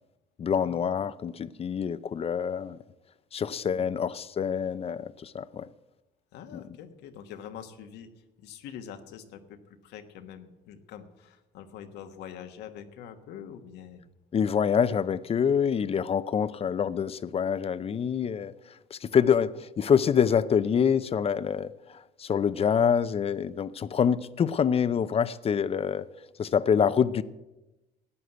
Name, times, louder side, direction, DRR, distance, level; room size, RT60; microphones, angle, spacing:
voice 1, 0.4-2.8 3.3-5.7 14.3-18.5 18.9-21.7 22.2-26.1 26.4-27.2, left 7 dB, 35° left, 0.6 m, -26 dB
voice 2, 6.3-8.1 8.4-14.1, left 8 dB, 85° left, 1.4 m, -45 dB
13.0 x 9.6 x 7.9 m
cardioid pair, 110°, 17 cm